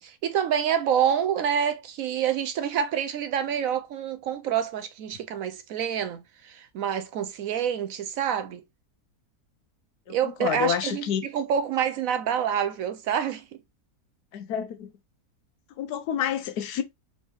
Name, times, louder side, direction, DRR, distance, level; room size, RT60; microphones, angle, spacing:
voice 1, 0.0-8.6 10.1-13.5, right 8 dB, 70° right, 0.9 m, -27 dB
voice 2, 10.1-11.3 14.3-14.9 15.8-16.8, left 9 dB, 80° left, 1.2 m, -29 dB
4.0 x 3.6 x 3.0 m
omnidirectional pair, 1.7 m